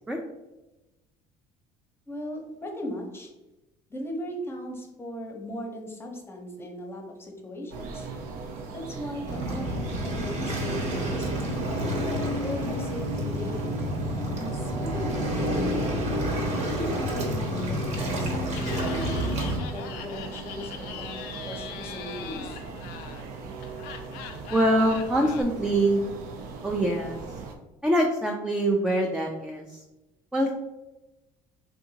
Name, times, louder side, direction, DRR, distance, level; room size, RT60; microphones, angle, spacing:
voice 1, 2.1-3.3 3.9-8.1 8.7-11.3 12.3-13.7 14.4-15.9 16.5-19.3 19.7-22.6, left 1 dB, 15° left, 1 dB, 0.7 m, -37 dB
sound 1, 7.7-27.5, right 4 dB, 70° right, 0.5 m, -39 dB
Waves surf, 9.3-19.6, equal, 50° right, 0.9 m, -29 dB
Laughter, 18.5-25.4, left 9 dB, 80° left, 0.4 m, -42 dB
voice 2, 24.5-26.0 26.6-27.2 27.8-29.8 30.3-30.5, right 1 dB, 5° right, 1 dB, 0.3 m, -24 dB
3.5 x 2.7 x 2.7 m, 1.0 s
cardioid pair, 105°, 15 cm